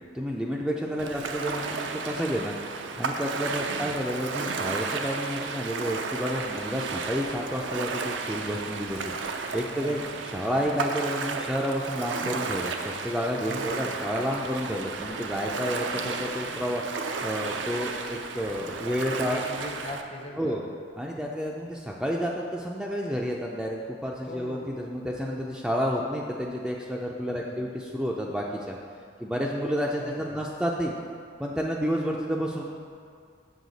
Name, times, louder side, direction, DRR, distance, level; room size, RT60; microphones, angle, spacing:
voice 1, 0.1-10.0 10.3-16.8 17.2-19.4 20.4-20.6 21.0-28.8 29.2-30.9 31.4-32.6, equal, 5° right, -2 dB, 0.3 m, -30 dB
voice 2, 1.0-1.4 3.7-4.0 9.7-10.6 13.4-14.0 19.3-20.7 24.2-24.8 27.3-27.7 30.0-30.4, left 1 dB, 30° left, 2 dB, 0.6 m, -41 dB
Ocean, 1.0-20.0, right 4 dB, 80° right, 0.5 m, -33 dB
6.4 x 6.4 x 4.0 m, 2.2 s
head